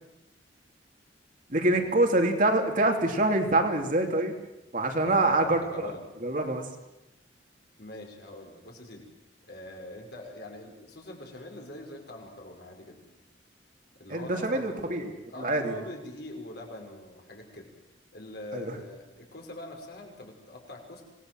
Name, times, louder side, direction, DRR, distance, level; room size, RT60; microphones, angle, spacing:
voice 1, 1.5-4.4 4.7-5.9 6.2-6.7 14.1-15.8 18.5-18.8, right 2 dB, 45° right, 3 dB, 2.8 m, -25 dB
voice 2, 5.0-6.0 7.8-9.1 9.5-13.0 14.0-17.7 18.1-21.0, left 1 dB, 60° left, 1 dB, 5.4 m, -43 dB
26.0 x 19.0 x 7.7 m, 0.96 s
head